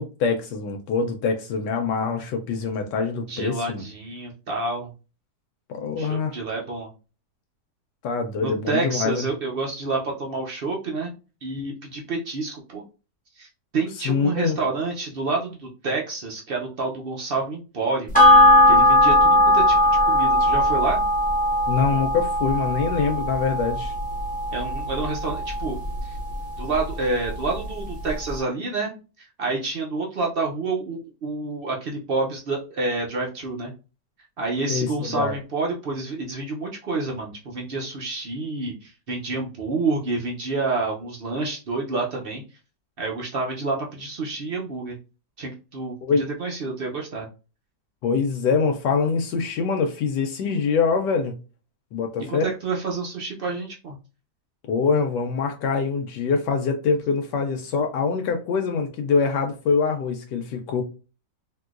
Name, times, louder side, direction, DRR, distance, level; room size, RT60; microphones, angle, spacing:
voice 1, 0.0-3.8 5.7-6.4 8.0-9.2 14.0-14.6 21.7-23.9 34.7-35.3 46.0-46.2 48.0-51.3 51.9-52.5 54.7-60.8, left 5 dB, 90° left, 1.2 m, -24 dB
voice 2, 3.3-4.9 6.0-6.9 8.4-11.1 11.4-12.8 13.3-18.1 18.7-21.0 24.5-26.2 26.6-28.9 29.2-33.7 34.4-42.4 43.0-45.0 45.4-47.3 52.3-54.0, right 3 dB, 85° right, 0.5 m, -28 dB
sound 1, 18.1-26.9 27.3-27.4, left 1 dB, 5° left, 0.7 m, -19 dB
3.7 x 2.6 x 2.4 m
omnidirectional pair, 1.8 m